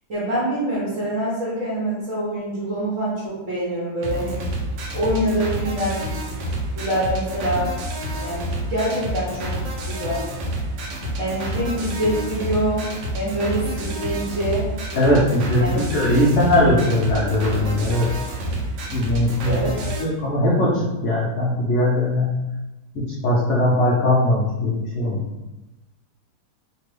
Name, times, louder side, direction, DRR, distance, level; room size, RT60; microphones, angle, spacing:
voice 1, 0.1-4.4 4.9-6.2 6.7-7.7 8.2-9.6 9.9-10.2 11.2-12.9 13.1-14.7 15.6-15.9 19.5-19.9, right 1 dB, 55° right, -7 dB, 1.0 m, -25 dB
sound 1, 4.0-20.0, right 1 dB, 80° right, 1.3 m, -29 dB
voice 2, 14.9-15.6 15.9-18.1 18.9-19.6 20.0-22.3 22.9-25.2, left 1 dB, 75° left, -6 dB, 0.6 m, -20 dB
3.3 x 2.2 x 3.2 m, 1.0 s
omnidirectional pair, 2.1 m